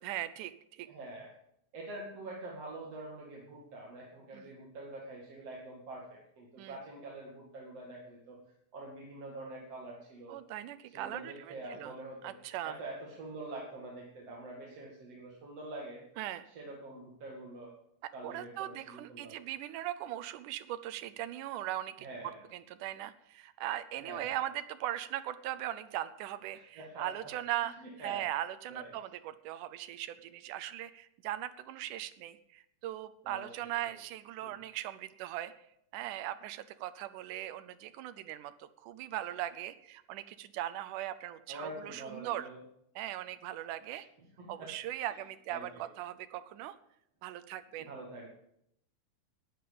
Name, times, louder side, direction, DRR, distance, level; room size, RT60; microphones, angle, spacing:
voice 1, 0.0-0.9 4.3-4.5 6.6-6.8 10.3-11.9 12.2-12.8 16.2-16.4 18.2-22.1 22.5-27.7 28.0-35.5 35.9-42.5 43.0-44.1 44.5-46.8 47.2-47.9, right 13 dB, 90° right, 12 dB, 2.2 m, -39 dB
voice 2, 0.9-1.3 1.7-8.4 8.7-10.4 10.9-12.3 12.6-16.0 16.5-17.7 18.1-19.3 22.0-22.4 24.0-24.4 26.5-27.1 27.6-28.3 28.7-29.0 33.2-34.0 34.4-34.5 41.5-42.6 43.9-44.0 44.4-44.7 45.1-45.2 45.5-45.9 47.8-48.3, right 2 dB, 55° right, -2 dB, 3.3 m, -45 dB
12.5 x 9.3 x 8.6 m, 0.76 s
omnidirectional pair, 3.5 m